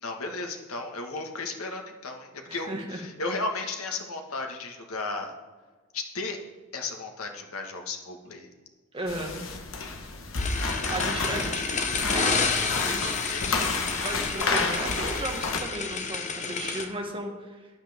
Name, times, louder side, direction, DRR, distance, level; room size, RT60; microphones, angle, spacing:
voice 1, 0.0-5.3 5.9-6.4 6.7-8.5 13.2-13.6, left 3 dB, 90° left, 3 dB, 1.6 m, -34 dB
voice 2, 2.5-3.0 8.9-9.5 10.9-11.6 12.1-12.5 12.8-13.2 14.0-17.7, right 1 dB, 25° right, 0 dB, 1.7 m, -35 dB
sound 1, 9.1-15.6, left 3 dB, 65° left, 1.3 m, -30 dB
sound 2, 10.4-16.8, left 4 dB, 35° left, 1.0 m, -30 dB
14.5 x 10.0 x 3.6 m, 1.4 s
head